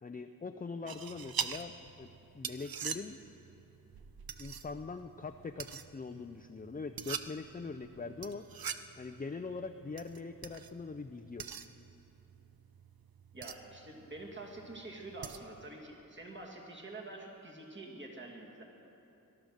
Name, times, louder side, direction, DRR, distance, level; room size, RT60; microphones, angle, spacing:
voice 1, 0.0-3.2 4.4-8.4 9.0-11.4, left 4 dB, 25° left, 8 dB, 0.4 m, -42 dB
sound 1, 0.9-15.7, right 7 dB, 85° right, 0.6 m, -45 dB
voice 2, 13.3-18.6, right 2 dB, 35° right, -1 dB, 2.2 m, -47 dB
18.5 x 12.0 x 6.4 m, 2.8 s
wide cardioid pair, 80°, 35 cm